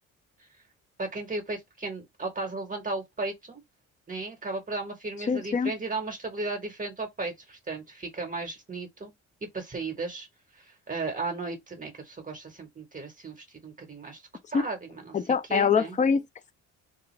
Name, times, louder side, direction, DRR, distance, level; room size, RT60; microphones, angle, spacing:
voice 1, 1.0-3.6 4.1-9.1 9.5-10.3 10.5-14.2 14.5-15.2 15.5-16.0, right 3 dB, 25° right, 0.8 m, -35 dB
voice 2, 5.3-5.7 14.5-14.6 15.1-16.2, left 6 dB, 25° left, 0.4 m, -24 dB
2.4 x 2.4 x 2.9 m
cardioid pair, 90°, 30 cm